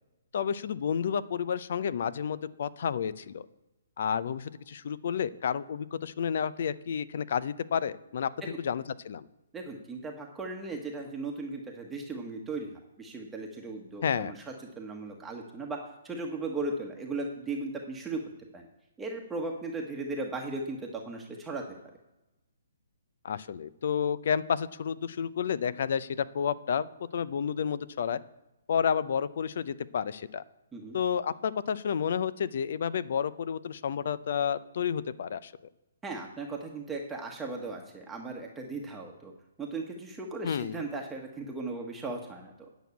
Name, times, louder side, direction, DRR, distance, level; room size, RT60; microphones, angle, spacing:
voice 1, 0.3-3.5 4.0-8.3 8.6-9.3 14.0-14.3 23.2-26.9 27.1-28.2 28.7-30.4 30.9-35.5 40.4-40.8, left 7 dB, 60° left, 16 dB, 0.6 m, -30 dB
voice 2, 9.5-14.4 14.8-18.2 18.5-18.7 19.0-21.6 30.7-31.0 36.0-39.3 39.6-42.5, right 3 dB, 10° right, 0 dB, 1.3 m, -37 dB
9.1 x 6.2 x 8.5 m, 0.98 s
hypercardioid pair, 135°, 0 cm